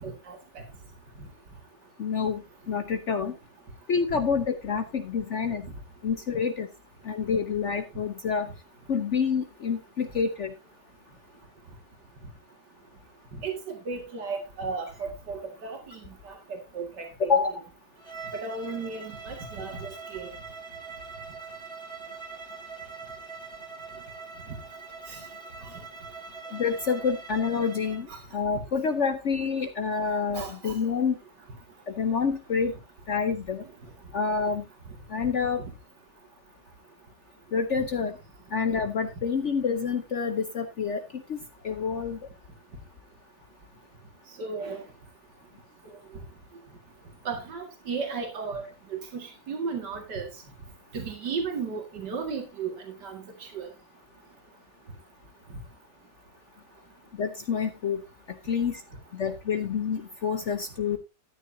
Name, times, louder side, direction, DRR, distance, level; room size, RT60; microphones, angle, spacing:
voice 1, 0.0-0.4 4.1-4.3 13.3-17.3 18.3-20.3 25.1-25.2 28.1-28.2 30.3-30.7 37.8-37.9 44.4-44.8 46.1-46.2 47.2-48.6 48.9-50.3 50.9-53.7, right 5 dB, 75° right, 3 dB, 2.7 m, -35 dB
voice 2, 2.0-2.4 2.7-3.3 3.9-5.6 6.0-6.7 7.0-8.5 8.9-10.5 17.3-17.5 26.5-28.1 28.3-31.2 32.0-32.7 33.1-33.6 34.1-34.6 35.1-35.6 37.5-38.1 38.5-41.4 41.6-42.2 57.2-58.0 58.5-58.8 59.1-61.0, left 6 dB, 55° left, 8 dB, 0.9 m, -27 dB
Bowed string instrument, 18.0-28.0, right 4 dB, 15° right, 1.3 m, -43 dB
13.0 x 9.6 x 2.7 m, 0.24 s
omnidirectional pair, 1.8 m